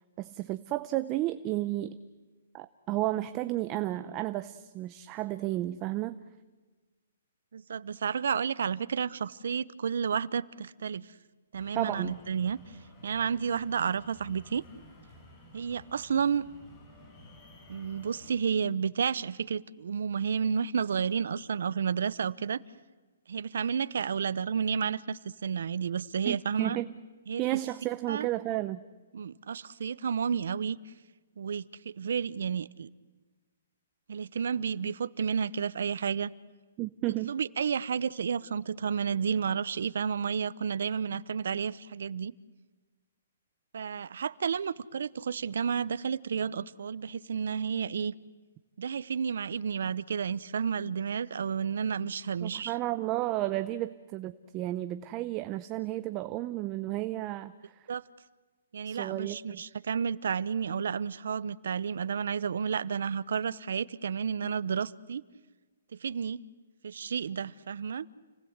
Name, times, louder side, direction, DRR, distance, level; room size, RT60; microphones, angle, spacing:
voice 1, 0.2-2.0 2.5-6.2 11.7-12.2 26.3-26.9 27.4-28.8 36.8-37.4 52.4-57.8 58.9-59.6, right 16 dB, 20° right, 0.7 m, -32 dB
voice 2, 7.5-11.1 11.5-12.6 13.0-14.6 15.5-16.5 17.7-22.6 23.3-26.8 27.3-27.4 28.1-28.3 29.1-30.8 31.4-32.9 34.1-36.3 37.2-42.3 43.7-48.1 48.8-52.7 57.9-58.0 58.7-65.2 65.9-66.4 66.8-68.1, right 7 dB, 70° right, 0.8 m, -31 dB
sound 1, 11.5-18.4, left 1 dB, 25° left, 6.0 m, -54 dB
29.5 x 19.0 x 8.1 m
hypercardioid pair, 160°, 0 cm